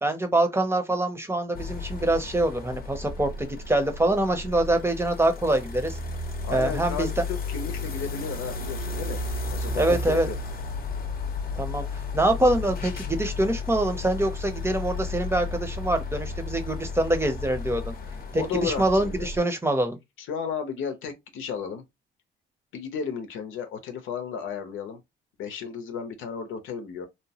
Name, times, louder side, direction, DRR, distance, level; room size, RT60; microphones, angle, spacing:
voice 1, 0.0-6.0 6.5-7.2 9.8-10.3 11.6-11.9 12.1-17.9 18.3-20.0, right 1 dB, 10° right, 0.7 m, -25 dB
sound 1, 1.5-19.4, left 3 dB, 50° left, 0.8 m, -33 dB
voice 2, 6.4-9.2 9.5-10.4 18.3-19.3 20.2-21.8 22.7-25.0 25.4-27.1, left 6 dB, 85° left, 0.8 m, -33 dB
2.9 x 2.1 x 2.8 m
cardioid pair, 90°, 20 cm